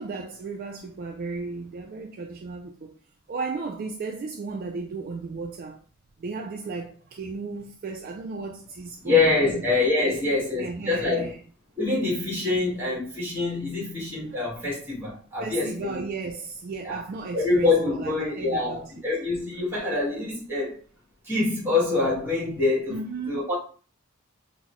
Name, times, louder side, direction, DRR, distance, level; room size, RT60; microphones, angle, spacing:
voice 1, 0.0-2.9 3.3-5.8 6.2-9.6 10.0-11.4 14.3-14.7 15.4-18.9 22.9-23.4, right 4 dB, 45° right, 0.3 m, -35 dB
voice 2, 9.0-11.3 11.8-16.0 16.8-17.0 17.3-20.8 21.2-23.0 23.3-23.5, left 3 dB, 10° right, 1.5 m, -25 dB
3.9 x 2.1 x 3.0 m
head